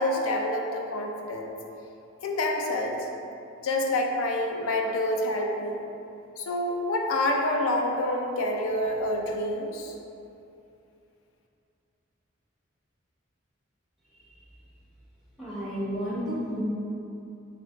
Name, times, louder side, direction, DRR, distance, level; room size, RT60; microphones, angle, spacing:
voice 1, 0.0-1.6 2.2-3.0 3.6-5.8 6.4-9.9, left 1 dB, 85° left, 1 dB, 0.4 m, -27 dB
voice 2, 15.4-16.6, equal, ahead, -9 dB, 0.8 m, -31 dB
4.0 x 2.8 x 3.1 m, 2.7 s
head